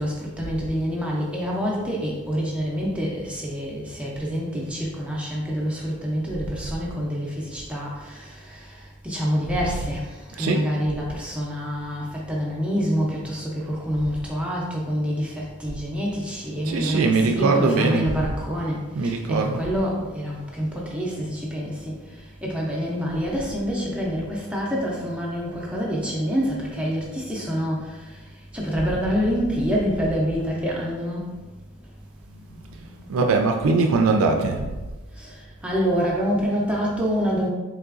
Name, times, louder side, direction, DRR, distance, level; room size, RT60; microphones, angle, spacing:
voice 1, 0.0-8.8 9.0-21.9 22.4-28.1 28.5-31.3 32.9-33.1 35.2-35.3 35.6-37.5, equal, 5° right, -4 dB, 0.5 m, -27 dB
voice 2, 9.5-9.9 10.4-10.6 16.6-18.3 18.9-19.6 33.1-34.7, right 3 dB, 85° right, 4 dB, 0.3 m, -21 dB
3.7 x 3.2 x 2.4 m, 1.2 s
head